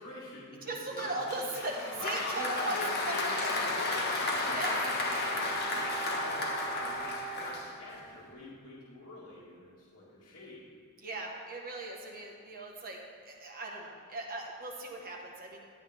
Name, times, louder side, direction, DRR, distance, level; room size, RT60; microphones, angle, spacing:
voice 1, 0.0-1.2 2.0-10.6, left 2 dB, 70° left, -10 dB, 2.0 m, -45 dB
voice 2, 0.6-3.6 4.5-4.8 11.0-13.0 13.2-15.6, right 2 dB, 40° right, 0 dB, 1.4 m, -38 dB
Applause, 1.0-8.1, left 2 dB, 50° left, 1.3 m, -33 dB
Wind instrument woodwind instrument, 3.1-7.9, right 5 dB, 20° left, 1.4 m, -43 dB
11.5 x 9.0 x 3.6 m, 2.2 s
head